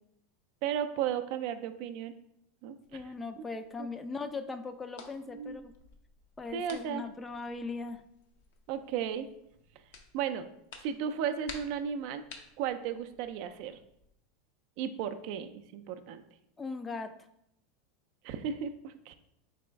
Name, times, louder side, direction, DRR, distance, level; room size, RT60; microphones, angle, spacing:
voice 1, 0.6-2.1 2.6-3.0 3.4-3.5 3.8-3.9 5.3-5.6 6.5-7.0 8.7-9.3 10.1-10.5 10.8-12.2 12.6-13.8 14.8-16.2 18.2-19.1, right 8 dB, 60° right, 9 dB, 0.3 m, -35 dB
sound 1, 2.8-14.1, left 4 dB, 70° left, 0.6 m, -54 dB
voice 2, 2.9-5.7 6.4-8.0 16.6-17.1, left 4 dB, 20° left, 10 dB, 0.3 m, -39 dB
4.1 x 3.0 x 3.4 m, 0.77 s
hypercardioid pair, 105°, 0 cm